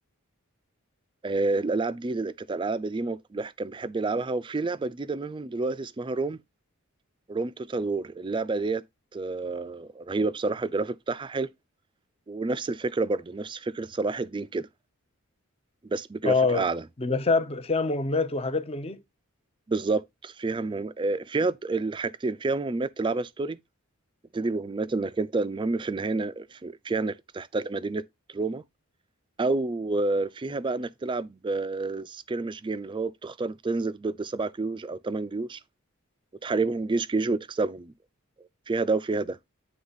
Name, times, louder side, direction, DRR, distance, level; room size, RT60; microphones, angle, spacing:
voice 1, 1.2-6.4 7.3-8.8 9.1-11.5 12.3-14.7 15.8-16.8 19.7-23.6 24.3-28.0 28.3-28.6 29.4-35.6 36.4-37.9 38.7-39.4, right 3 dB, 20° right, 0.4 m, -29 dB
voice 2, 16.2-16.7 17.0-19.0, left 3 dB, 25° left, 0.6 m, -25 dB
9.5 x 3.4 x 4.0 m
head